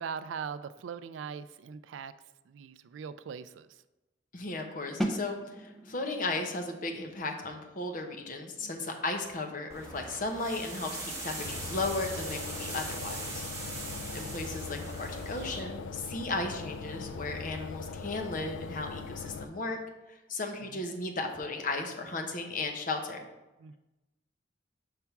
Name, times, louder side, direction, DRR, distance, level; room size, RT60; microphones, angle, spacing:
voice 1, 0.0-2.1 2.5-3.8 8.6-8.9 13.6-13.8 20.6-20.9 23.6-23.8, right 6 dB, 90° right, 14 dB, 0.3 m, -41 dB
voice 2, 4.3-13.4 13.8-19.8 20.1-23.2, left 2 dB, 45° left, 4 dB, 0.8 m, -35 dB
sound 1, 5.0-10.7, equal, ahead, 0.5 m, -40 dB
sound 2, 9.7-15.6, right 2 dB, 15° right, 1.8 m, -40 dB
sound 3, 11.4-19.4, left 4 dB, 85° left, 0.4 m, -41 dB
5.7 x 3.5 x 5.7 m, 1.0 s
head